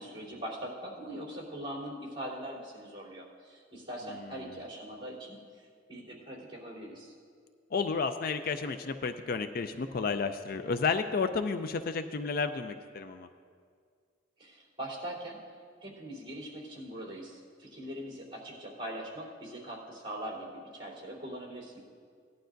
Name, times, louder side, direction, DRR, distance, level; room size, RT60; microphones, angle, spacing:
voice 1, 0.0-5.4 5.9-7.1 14.4-15.4 15.8-21.8, right 1 dB, 25° right, -6 dB, 3.3 m, -41 dB
voice 2, 7.7-13.3, left 5 dB, 50° left, 9 dB, 0.4 m, -31 dB
18.0 x 11.5 x 2.6 m, 2.1 s
head